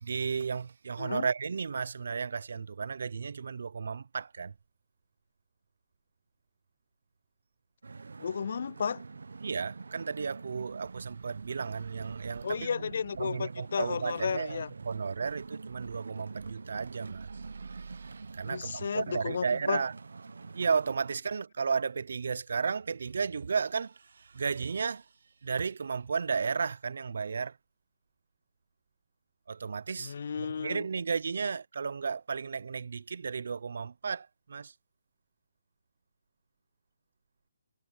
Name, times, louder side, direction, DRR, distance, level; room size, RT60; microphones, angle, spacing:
voice 1, 0.0-4.5 9.4-12.7 13.2-19.9 20.5-25.0 25.4-27.6 29.5-34.7, right 5 dB, 70° right, 0.7 m, -34 dB
sound 1, 7.8-21.2, right 4 dB, 85° right, 1.2 m, -46 dB
voice 2, 8.2-9.0 12.4-14.7 18.5-19.8 30.0-30.8, left 6 dB, 60° left, 0.3 m, -33 dB
hypercardioid pair, 160°, 0 cm